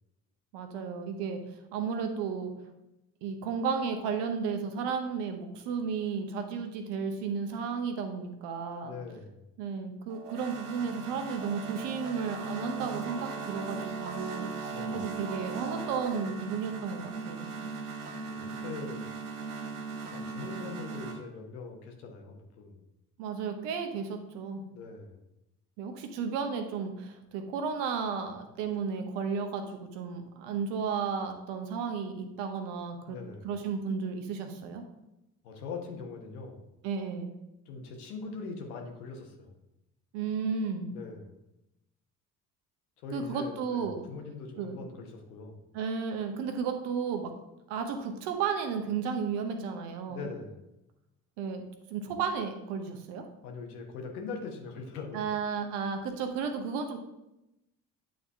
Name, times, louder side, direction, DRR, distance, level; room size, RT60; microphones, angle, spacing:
voice 1, 0.5-1.4 1.7-2.5 3.2-9.0 9.6-17.5 23.2-24.6 25.8-33.2 33.4-34.8 36.8-37.4 40.1-40.9 43.1-44.0 44.6-44.8 45.7-47.3 47.7-50.2 51.4-51.6 51.9-53.2 55.1-57.0, right 6 dB, 65° right, 5 dB, 1.1 m, -33 dB
voice 2, 8.8-9.3 14.7-15.0 18.3-19.1 20.1-22.8 24.7-25.2 33.1-33.5 35.4-36.7 37.7-39.6 40.9-41.3 43.0-45.6 50.1-50.6 53.4-55.2, left 4 dB, 80° left, 2 dB, 1.1 m, -42 dB
sound 1, 10.1-21.2, right 4 dB, 85° right, 0.8 m, -38 dB
8.7 x 3.8 x 3.5 m, 0.90 s
hypercardioid pair, 45°, 44 cm